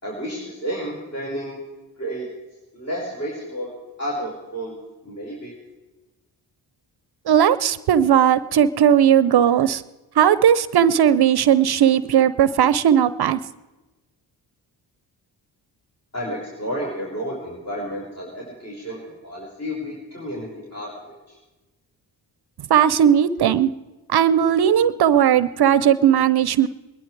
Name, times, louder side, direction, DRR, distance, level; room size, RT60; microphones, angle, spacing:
voice 1, 0.0-1.6 2.0-2.3 2.7-3.7 4.0-4.8 5.0-5.5 16.1-21.4, equal, 30° left, -4 dB, 5.2 m, -31 dB
voice 2, 7.3-9.8 10.2-13.4 22.7-23.7 24.1-26.7, right 9 dB, 55° right, 16 dB, 0.7 m, -17 dB
22.0 x 11.5 x 4.7 m, 1.1 s
supercardioid pair, 50°, 48 cm